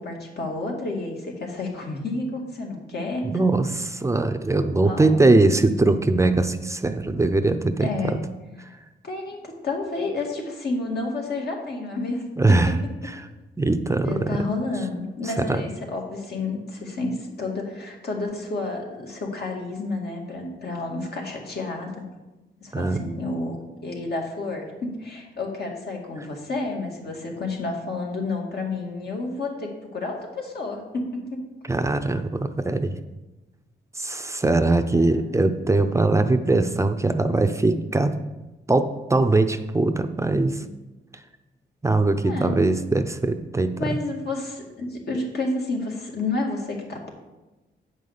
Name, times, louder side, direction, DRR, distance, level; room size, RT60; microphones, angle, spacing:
voice 1, 0.0-3.4 4.8-5.5 7.8-8.2 9.0-12.3 14.0-22.0 22.6-23.6 23.8-31.4 34.9-35.2 42.2-42.5 43.8-47.1, left 3 dB, 60° left, 0 dB, 2.2 m, -30 dB
voice 2, 3.2-8.2 8.6-8.7 12.4-12.7 13.0-13.3 13.6-14.4 15.2-15.6 22.7-23.0 31.7-32.9 34.0-38.1 38.7-40.6 41.8-44.0, right 2 dB, 15° right, 8 dB, 0.6 m, -21 dB
8.7 x 5.4 x 6.6 m, 1.1 s
cardioid pair, 100°, 19 cm